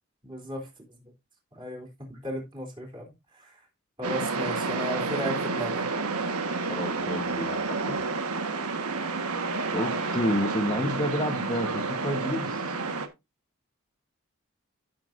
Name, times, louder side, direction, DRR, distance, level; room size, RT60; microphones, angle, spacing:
voice 1, 0.2-0.7 1.5-3.0 3.3-3.6 4.0-5.8, equal, 20° right, 0 dB, 3.6 m, -35 dB
sound 1, 4.0-13.1, right 3 dB, 90° right, 1.5 m, -30 dB
voice 2, 6.7-8.0 9.7-12.8, left 1 dB, 20° left, 3 dB, 1.2 m, -30 dB
15.5 x 6.9 x 2.6 m, 0.23 s
head